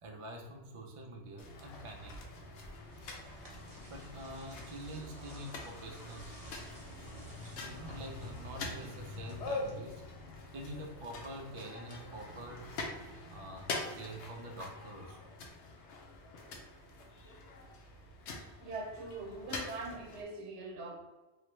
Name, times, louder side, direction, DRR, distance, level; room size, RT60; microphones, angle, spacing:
voice 1, 0.0-2.2 3.8-6.4 7.5-10.0 10.5-12.7 13.3-15.3, right 1 dB, 50° right, 1 dB, 0.3 m, -46 dB
sound 1, 1.4-20.2, left 2 dB, 80° left, 0.9 m, -44 dB
sound 2, 2.5-10.3, right 1 dB, 35° right, 0.9 m, -55 dB
voice 2, 18.6-21.0, right 2 dB, 85° right, 2 dB, 0.9 m, -43 dB
3.2 x 2.0 x 3.1 m, 1.1 s
omnidirectional pair, 1.2 m